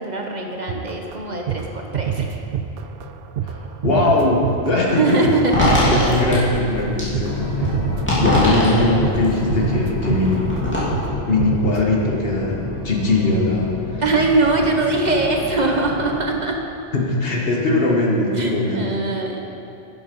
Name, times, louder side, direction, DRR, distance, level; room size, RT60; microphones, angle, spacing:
voice 1, 0.0-2.3 4.8-6.1 6.5-6.7 14.0-16.6 18.3-19.5, right 3 dB, 45° right, 1 dB, 1.0 m, -22 dB
sound 1, 0.7-7.3 7.6-8.7 9.0-9.2 9.5-10.6 10.9-11.1 11.4-11.8, right 8 dB, 70° right, 0.7 m, -26 dB
voice 2, 3.4-5.2 5.9-7.7 8.1-10.5 11.3-14.0 16.9-19.0, left 2 dB, 65° left, -2 dB, 1.6 m, -20 dB
sound 2, 5.5-10.8, left 1 dB, 10° left, 2.7 m, -22 dB
sound 3, 7.2-16.4, left 3 dB, 85° left, 1.8 m, -30 dB
11.0 x 7.3 x 5.3 m, 2.7 s
omnidirectional pair, 1.1 m